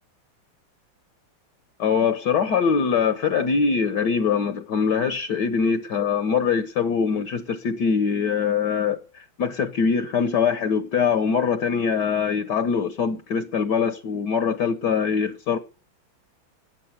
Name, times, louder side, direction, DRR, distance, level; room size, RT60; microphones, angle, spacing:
voice 1, 1.8-15.6, left 6 dB, 60° left, 1.6 m, -23 dB
15.0 x 9.6 x 8.0 m
omnidirectional pair, 2.1 m